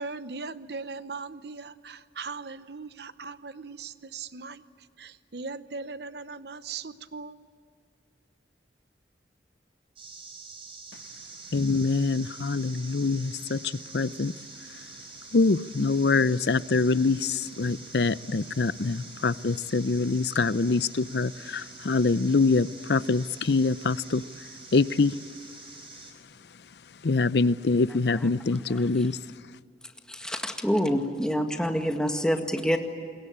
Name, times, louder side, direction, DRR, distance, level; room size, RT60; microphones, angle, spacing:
voice 1, 0.0-4.6 5.0-7.4, right 4 dB, 70° right, 13 dB, 0.9 m, -39 dB
sound 1, 10.0-26.1, right 4 dB, 30° right, 4.7 m, -46 dB
voice 2, 11.5-14.3 15.3-24.2 24.7-25.2 27.0-29.2, left 3 dB, 70° left, 17 dB, 0.6 m, -25 dB
voice 3, 30.1-32.8, equal, 5° left, 4 dB, 1.9 m, -26 dB
26.5 x 22.0 x 8.9 m, 2.2 s
head